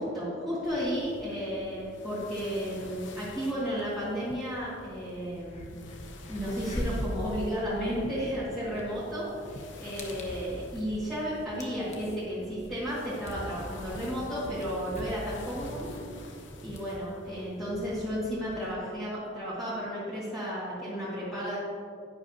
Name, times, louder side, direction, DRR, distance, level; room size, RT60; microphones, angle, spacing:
voice 1, 0.0-5.8 6.3-15.9 16.6-21.6, equal, ahead, -12 dB, 2.2 m, -33 dB
sound 1, 0.6-18.2, left 1 dB, 70° left, 0.9 m, -47 dB
sound 2, 4.9-5.0 5.4-18.7, equal, 35° left, 1.1 m, -42 dB
10.5 x 9.9 x 2.9 m, 2.4 s
head